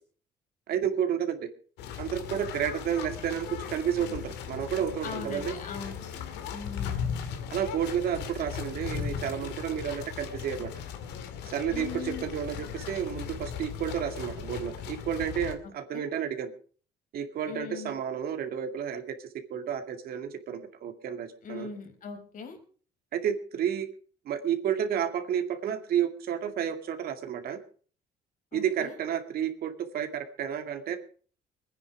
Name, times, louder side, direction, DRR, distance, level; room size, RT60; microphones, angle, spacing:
voice 1, 0.7-1.5 2.0-5.5 7.5-10.7 11.4-16.5 17.1-21.7 23.1-23.9 24.2-27.6 28.5-31.0, right 9 dB, 65° right, 7 dB, 2.3 m, -31 dB
sound 1, 1.8-15.5, left 8 dB, 85° left, 2.2 m, -37 dB
voice 2, 5.0-6.1 6.5-7.0 11.7-12.2 15.6-16.0 17.5-17.9 21.4-22.6 28.5-29.0, left 6 dB, 50° left, 4 dB, 4.7 m, -40 dB
21.5 x 9.9 x 4.9 m, 0.43 s
cardioid pair, 110°, 17 cm